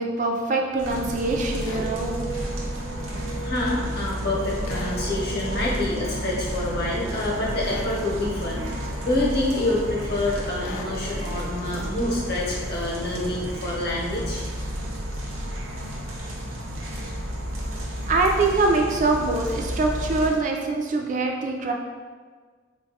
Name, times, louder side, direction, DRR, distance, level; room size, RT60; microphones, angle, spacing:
voice 1, 0.0-2.3 18.0-21.7, right 3 dB, 40° right, 1 dB, 0.3 m, -24 dB
sound 1, 0.8-20.3, equal, 90° right, 0.7 m, -31 dB
sound 2, 1.6-1.9 4.6-5.0 7.6-7.9 10.6-10.9, left 3 dB, 80° left, 0.4 m, -38 dB
voice 2, 2.3-2.6 3.4-14.4, left 2 dB, 50° left, -5 dB, 0.8 m, -27 dB
3.6 x 2.3 x 2.7 m, 1.5 s
head